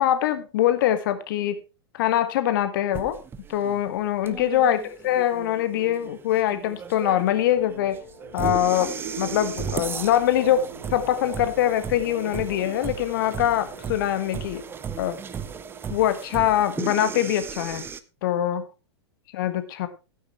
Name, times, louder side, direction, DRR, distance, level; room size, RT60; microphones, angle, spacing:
voice 1, 0.0-1.6 1.9-3.2 3.5-8.0 8.3-14.6 15.0-15.2 15.9-17.9 18.2-18.6 19.3-19.9, left 11 dB, 50° left, 12 dB, 1.5 m, -23 dB
sound 1, 2.9-18.0, right 7 dB, 15° right, 0.8 m, -36 dB
sound 2, 6.0-16.6, right 4 dB, 60° right, 4.5 m, -44 dB
16.0 x 9.3 x 3.1 m, 0.29 s
figure-of-eight pair, 100°, 14 cm